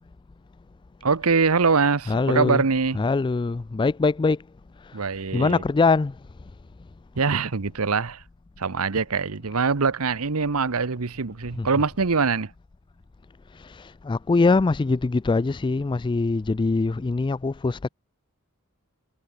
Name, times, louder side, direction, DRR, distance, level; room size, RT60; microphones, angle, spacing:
voice 1, 1.0-3.0 4.9-5.6 7.2-8.2 8.6-12.5, right 4 dB, 75° right, 1.0 m, -23 dB
voice 2, 2.1-2.6 3.0-4.4 4.8-5.0 5.3-6.2 11.6-11.7 13.5-17.9, left 3 dB, 20° left, 0.3 m, -23 dB
head